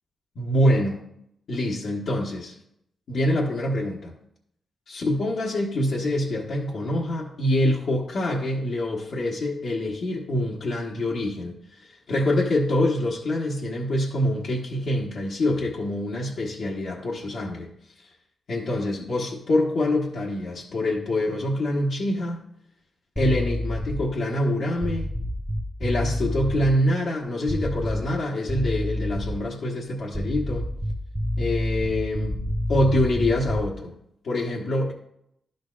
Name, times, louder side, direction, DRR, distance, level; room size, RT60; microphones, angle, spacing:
voice 1, 0.3-1.0 1.5-2.6 3.1-4.1 4.9-18.1 18.5-22.4 23.2-25.1 25.8-30.7 31.4-32.4 32.7-33.9 34.2-34.9, left 1 dB, 65° left, -4 dB, 1.1 m, -25 dB
sound 1, 23.2-24.1 24.8-26.7 27.5-28.2 28.5-29.4 30.1-33.8, equal, 5° right, 0.6 m, -28 dB
12.0 x 6.5 x 2.4 m, 0.74 s
wide cardioid pair, 130°, 0 cm